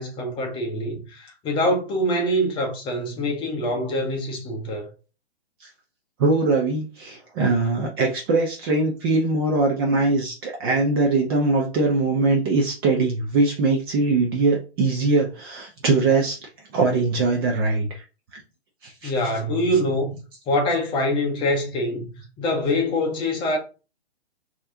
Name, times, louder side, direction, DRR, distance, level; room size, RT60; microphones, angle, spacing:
voice 1, 0.0-4.9 19.0-20.2 20.5-22.1 22.4-23.6, left 1 dB, 15° left, 0.8 m, -24 dB
voice 2, 6.2-16.4 16.7-18.0 18.3-18.4 18.8-19.1, right 3 dB, 25° right, 0.6 m, -22 dB
4.5 x 2.9 x 2.7 m
hypercardioid pair, 135°, 32 cm